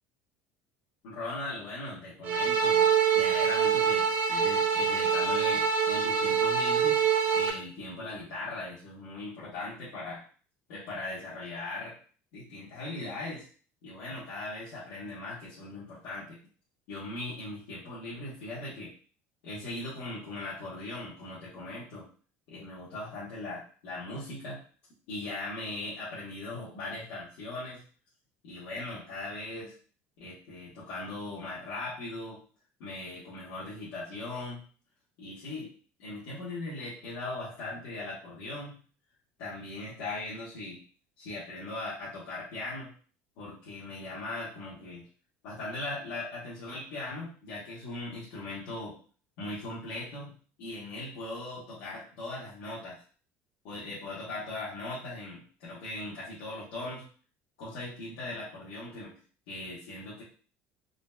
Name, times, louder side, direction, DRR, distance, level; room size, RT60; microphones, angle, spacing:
voice 1, 1.0-2.9 3.1-7.0 7.3-10.3 10.7-12.0 12.3-13.5 13.8-16.4 16.9-18.9 19.4-22.1 22.5-24.6 25.1-27.8 28.4-29.7 30.2-32.4 32.8-34.6 35.2-35.7 36.0-38.8 39.4-40.8 41.2-42.9 43.4-45.1 45.4-49.0 49.4-50.3 50.6-53.0 53.6-57.0 57.6-59.1 59.5-60.2, left 2 dB, 80° left, -9 dB, 1.0 m, -39 dB
sound 1, 2.2-7.5, right 7 dB, 35° right, 0.4 m, -25 dB
3.8 x 2.1 x 2.2 m, 0.40 s
cardioid pair, 170°, 5 cm